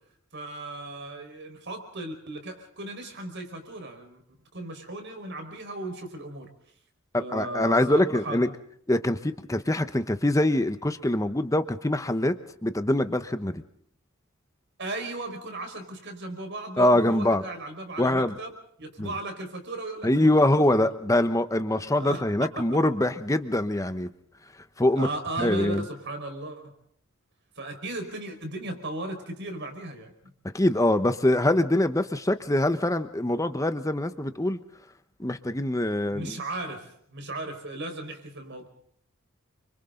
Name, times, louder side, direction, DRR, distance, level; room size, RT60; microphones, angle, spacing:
voice 1, 0.3-4.2 4.5-6.5 7.2-8.4 14.8-20.9 22.0-22.2 22.6-22.8 24.9-26.7 27.6-30.3 36.1-38.7, right 2 dB, 60° right, 5 dB, 5.1 m, -36 dB
voice 2, 7.1-8.5 8.9-12.4 12.6-13.6 16.8-17.4 18.0-18.4 19.0-19.1 20.0-24.1 24.8-25.1 25.4-25.8 30.5-34.6 35.2-36.4, left 1 dB, 15° left, 10 dB, 1.1 m, -24 dB
30.0 x 25.5 x 3.9 m, 0.65 s
head